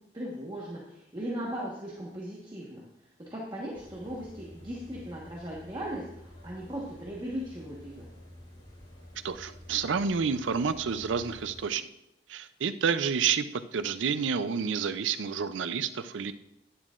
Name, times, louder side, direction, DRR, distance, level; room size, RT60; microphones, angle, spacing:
voice 1, 0.1-2.8 3.3-8.0, equal, 25° right, -5 dB, 1.3 m, -38 dB
sound 1, 3.7-11.6, left 1 dB, 45° left, 4.0 m, -50 dB
voice 2, 9.2-11.9 12.3-16.3, right 6 dB, 85° right, 12 dB, 0.5 m, -29 dB
11.0 x 9.9 x 2.5 m, 0.84 s
head